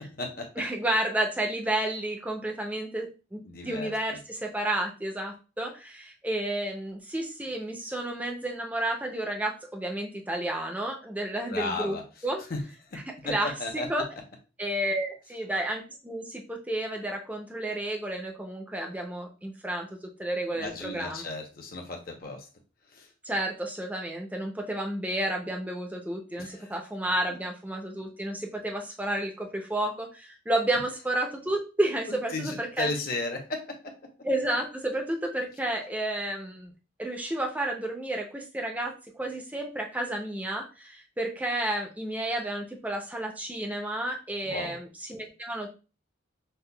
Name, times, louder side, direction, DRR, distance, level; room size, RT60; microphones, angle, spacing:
voice 1, 0.6-12.4 13.1-14.1 14.6-19.9 20.2-21.2 23.2-32.9 34.2-36.7 37.0-45.7, right 1 dB, 10° right, 2 dB, 0.5 m, -31 dB
voice 2, 3.5-3.9 11.5-12.0 12.5-12.6 12.9-13.0 13.2-13.3 13.6-13.9 20.5-22.4 23.0-23.1 26.4-26.7 32.1-33.8 44.4-44.8, left 2 dB, 50° left, 3 dB, 0.8 m, -34 dB
5.4 x 2.2 x 2.2 m, 0.33 s
head